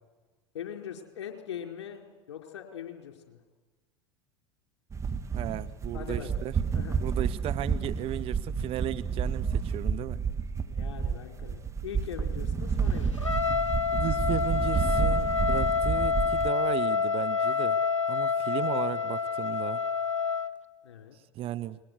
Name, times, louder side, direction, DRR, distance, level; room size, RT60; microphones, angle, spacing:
voice 1, 0.5-3.4 5.9-7.0 10.6-13.5 20.8-21.2, left 9 dB, 65° left, 4.7 m, -42 dB
sound 1, 4.9-16.5, right 6 dB, 20° right, 1.6 m, -30 dB
voice 2, 5.3-6.5 7.0-10.2 13.9-17.8 18.1-19.8 21.3-21.8, right 13 dB, 40° right, 1.0 m, -35 dB
Trumpet, 13.2-20.5, left 6 dB, 90° left, 1.0 m, -28 dB
28.0 x 22.0 x 8.3 m
figure-of-eight pair, 80°, 15 cm